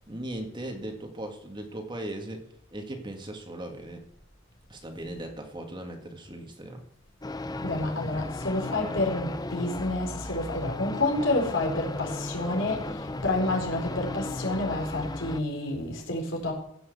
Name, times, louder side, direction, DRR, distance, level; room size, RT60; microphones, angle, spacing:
voice 1, 0.1-2.4 2.7-4.0 4.7-6.8, right 1 dB, 25° right, 1.8 m, -38 dB
sound 1, 7.2-15.4, left 2 dB, 20° left, 0.6 m, -35 dB
voice 2, 7.6-16.5, left 2 dB, 70° left, 4.3 m, -29 dB
15.5 x 6.4 x 8.1 m
head